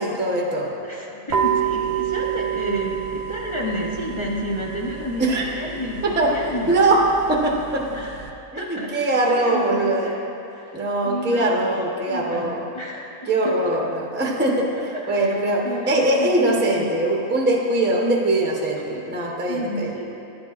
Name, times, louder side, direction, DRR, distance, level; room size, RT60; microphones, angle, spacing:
voice 1, 0.0-0.7 5.2-5.5 6.0-6.3 6.7-7.0 7.3-8.0 8.5-10.1 10.7-12.6 13.3-14.7 15.1-19.9, right 2 dB, 10° right, -2 dB, 0.5 m, -21 dB
voice 2, 0.8-6.8 7.9-10.2 10.5-11.8 12.1-13.1 13.4-13.6 14.9-16.9 18.7-20.0, equal, 50° left, -4 dB, 0.3 m, -31 dB
sound 1, 1.3-8.3, right 9 dB, 65° right, 0.7 m, -29 dB
12.0 x 8.7 x 2.4 m, 2.9 s
omnidirectional pair, 1.6 m